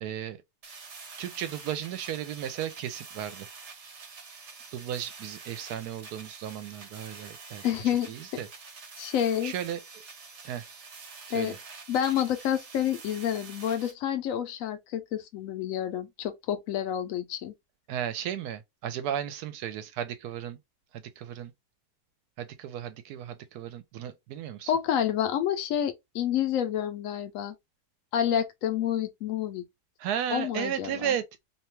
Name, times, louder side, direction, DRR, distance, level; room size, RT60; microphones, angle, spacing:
voice 1, 0.0-0.4 1.2-3.5 4.7-7.6 8.1-8.5 9.4-9.8 10.4-10.7 11.3-11.6 17.9-20.6 20.9-21.5 22.4-24.7 30.0-31.5, right 10 dB, 75° right, 1.1 m, -34 dB
sound 1, 0.6-13.9, right 5 dB, 55° right, 1.0 m, -47 dB
voice 2, 7.6-8.1 9.0-9.5 11.3-11.5 11.9-17.5 24.7-27.5 28.1-29.6 30.3-31.1, left 10 dB, 70° left, 0.8 m, -29 dB
2.8 x 2.2 x 3.0 m
omnidirectional pair, 1.7 m